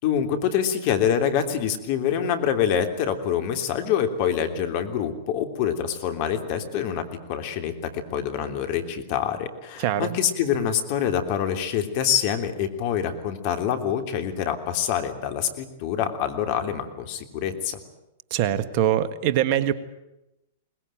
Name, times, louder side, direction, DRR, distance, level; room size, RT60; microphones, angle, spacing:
voice 1, 0.0-17.8, left 8 dB, 50° left, 7 dB, 3.2 m, -26 dB
voice 2, 9.8-10.1 18.3-19.7, right 11 dB, 50° right, 12 dB, 1.6 m, -23 dB
22.5 x 20.0 x 9.2 m, 0.92 s
hypercardioid pair, 110°, 0 cm